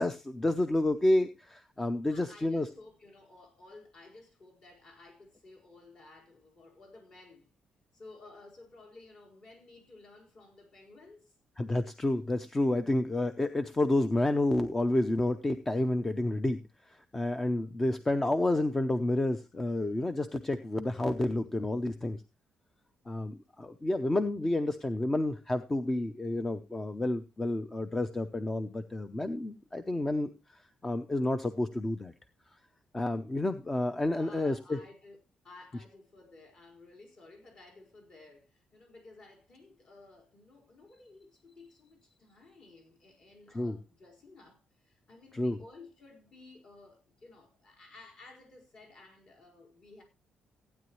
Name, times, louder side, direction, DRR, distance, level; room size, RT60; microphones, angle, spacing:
voice 1, 0.0-2.7 11.6-16.6 16.9-22.2 23.1-32.1 32.9-34.8 43.5-43.8 45.3-45.6, left 1 dB, 15° left, 0.6 m, -30 dB
voice 2, 2.1-7.5 7.9-11.3 34.1-35.2 35.4-50.0, left 2 dB, 45° left, 4.6 m, -54 dB
15.5 x 9.5 x 3.1 m
cardioid pair, 155°, 2 cm